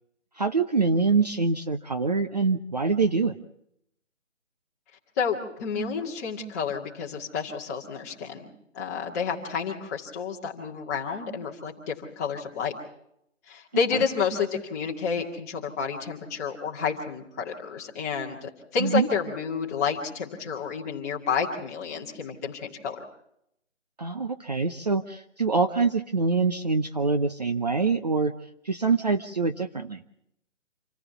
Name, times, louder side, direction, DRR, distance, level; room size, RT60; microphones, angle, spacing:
voice 1, 0.4-3.4 18.8-19.1 24.0-28.3 28.6-30.0, right 4 dB, 35° right, 8 dB, 0.8 m, -25 dB
voice 2, 5.2-8.5 8.7-12.7 13.5-23.0, left 6 dB, 15° left, -2 dB, 2.0 m, -30 dB
27.0 x 15.0 x 7.0 m, 0.76 s
hypercardioid pair, 170°, 37 cm